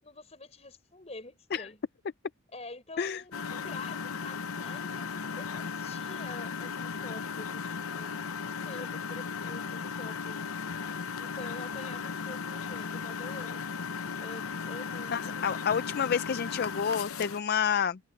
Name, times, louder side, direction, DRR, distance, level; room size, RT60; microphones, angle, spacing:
voice 1, 0.0-1.8 2.5-8.2 8.4-10.4 11.2-13.6 14.2-15.8, left 2 dB, 30° left, 5.3 m, -47 dB
Engine, 3.3-17.4, left 5 dB, 90° left, 0.8 m, -36 dB
voice 2, 15.1-18.0, left 7 dB, 50° left, 0.4 m, -29 dB
head